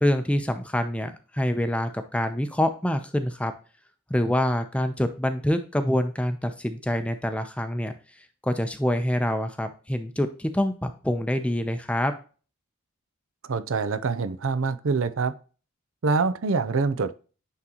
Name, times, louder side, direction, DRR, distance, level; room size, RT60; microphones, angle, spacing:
voice 1, 0.0-3.5 4.1-7.9 8.4-12.1, left 1 dB, 5° left, 8 dB, 0.6 m, -26 dB
voice 2, 13.4-15.3 16.0-17.2, right 4 dB, 75° right, 14 dB, 0.5 m, -25 dB
9.7 x 3.8 x 2.9 m, 0.36 s
head